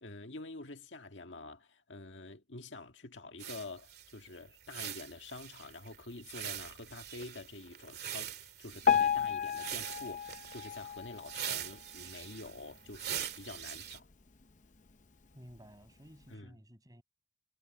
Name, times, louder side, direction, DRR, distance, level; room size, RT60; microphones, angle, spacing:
voice 1, 0.0-14.1 16.3-16.6, left 2 dB, 85° left, 1.7 m, -47 dB
sound 1, 3.4-14.0, right 10 dB, 55° right, 2.7 m, -43 dB
Piano, 8.8-12.0 12.5-12.6 12.9-13.0 13.7-13.8 14.4-14.5, left 8 dB, 45° left, 0.8 m, -32 dB
voice 2, 15.3-17.0, equal, 20° right, 6.9 m, -54 dB
head